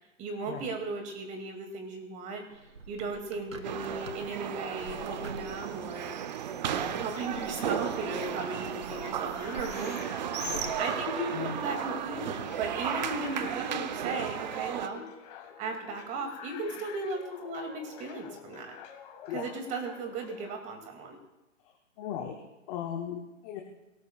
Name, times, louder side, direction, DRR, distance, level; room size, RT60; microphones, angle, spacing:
voice 1, 0.2-2.4 2.9-6.1 6.6-9.9 10.8-15.0 15.6-18.7 19.3-21.2, right 3 dB, 20° right, 5 dB, 2.2 m, -36 dB
Bird, 2.5-11.4, right 3 dB, 80° right, 1.9 m, -45 dB
sound 1, 3.6-14.9, right 9 dB, 35° right, 0.6 m, -34 dB
sound 2, 6.7-20.6, left 8 dB, 30° left, 1.6 m, -48 dB
voice 2, 10.4-10.8 11.3-11.5 19.3-19.4 22.0-23.6, left 9 dB, 10° left, 2 dB, 0.5 m, -37 dB
28.5 x 18.0 x 2.3 m, 1.0 s
hypercardioid pair, 135°, 39 cm